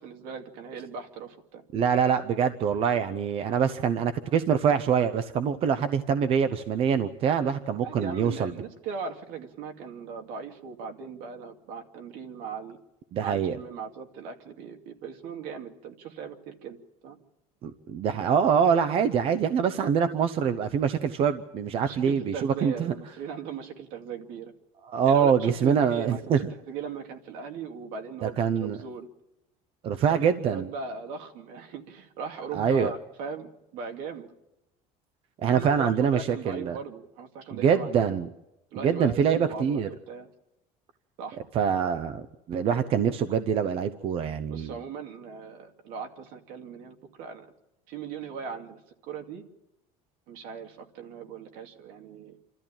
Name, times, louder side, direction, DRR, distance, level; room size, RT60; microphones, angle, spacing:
voice 1, 0.0-1.6 7.8-12.8 13.2-16.8 17.0-17.2 21.8-24.5 25.1-29.1 30.1-34.3 35.4-38.1 38.7-40.3 41.2-41.4 44.5-47.5 47.9-49.4 50.3-52.4, right 6 dB, 70° right, 4 dB, 2.6 m, -39 dB
voice 2, 1.7-8.5 13.1-13.6 17.6-22.9 24.9-26.4 28.2-28.8 29.8-30.7 32.5-32.9 35.4-36.8 37.5-38.3 38.8-39.9 41.5-42.2 42.5-44.7, right 7 dB, 40° right, 11 dB, 0.8 m, -24 dB
28.0 x 13.5 x 8.9 m, 0.91 s
cardioid pair, 175°, 15 cm